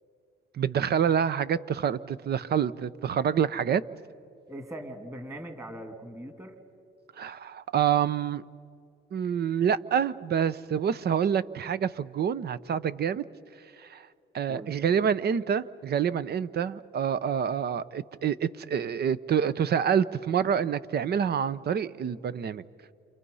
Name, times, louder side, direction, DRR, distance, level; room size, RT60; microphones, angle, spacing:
voice 1, 0.5-3.8 7.2-8.4 9.1-13.2 13.8-14.1 14.3-22.6, right 8 dB, 55° right, 16 dB, 0.8 m, -27 dB
voice 2, 4.5-6.5 14.5-14.9, right 1 dB, 15° right, 6 dB, 3.0 m, -41 dB
29.0 x 27.5 x 5.6 m, 2.4 s
cardioid pair, 90°, 20 cm